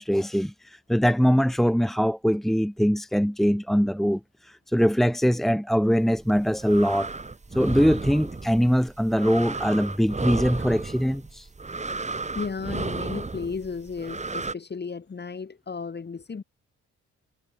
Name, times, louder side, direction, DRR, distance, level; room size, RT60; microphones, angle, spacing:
voice 1, 0.0-7.1 7.5-11.5, equal, ahead, 1.8 m, -22 dB
sound 1, 6.2-14.5, right 3 dB, 25° right, 4.8 m, -33 dB
voice 2, 12.4-16.4, left 5 dB, 35° left, 7.0 m, -34 dB
cardioid pair, 90°, 30 cm